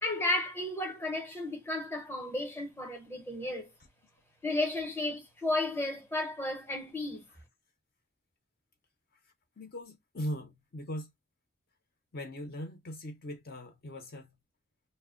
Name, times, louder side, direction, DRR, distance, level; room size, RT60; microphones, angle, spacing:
voice 1, 0.0-3.7 4.4-7.2, left 2 dB, 10° left, 0.7 m, -33 dB
voice 2, 9.6-11.1 12.1-14.4, equal, 50° left, 0.6 m, -40 dB
2.1 x 2.0 x 3.5 m
head